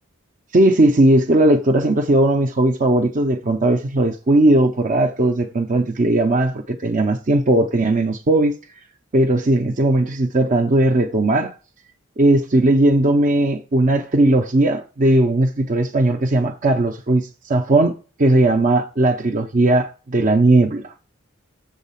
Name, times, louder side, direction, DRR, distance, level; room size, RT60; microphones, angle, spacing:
voice 1, 0.5-8.5 9.1-11.5 12.2-17.9 18.2-20.9, right 1 dB, 40° right, 0.6 m, -17 dB
7.4 x 3.9 x 5.6 m
head